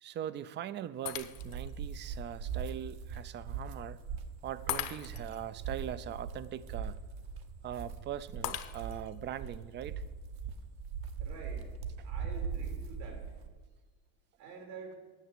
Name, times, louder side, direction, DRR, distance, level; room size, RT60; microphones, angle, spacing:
voice 1, 0.0-4.0 4.4-7.0 7.6-10.0, right 10 dB, 30° right, 16 dB, 0.3 m, -41 dB
Shatter, 1.1-1.8 2.3-2.4 4.7-5.4 8.4-9.2, left 13 dB, 55° left, 0.8 m, -39 dB
sound 1, 1.1-13.5, right 6 dB, 55° right, 1.1 m, -40 dB
voice 2, 11.2-11.7 12.0-13.3 14.4-15.0, right 4 dB, 80° right, 2 dB, 3.7 m, -47 dB
9.2 x 6.8 x 8.2 m, 1.3 s
cardioid pair, 130°, 42 cm